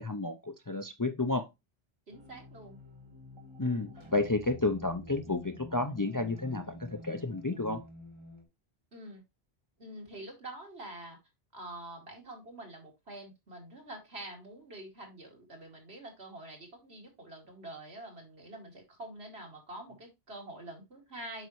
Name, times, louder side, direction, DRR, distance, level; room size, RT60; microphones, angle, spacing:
voice 1, 0.0-1.4 3.6-7.8, left 2 dB, 25° left, 0.4 m, -31 dB
sound 1, 2.1-8.4, left 1 dB, 25° right, 1.5 m, -49 dB
voice 2, 2.1-2.8 8.9-9.2 9.8-11.2 11.5-21.5, right 1 dB, 80° right, 2.7 m, -46 dB
7.9 x 5.3 x 3.1 m
omnidirectional pair, 1.0 m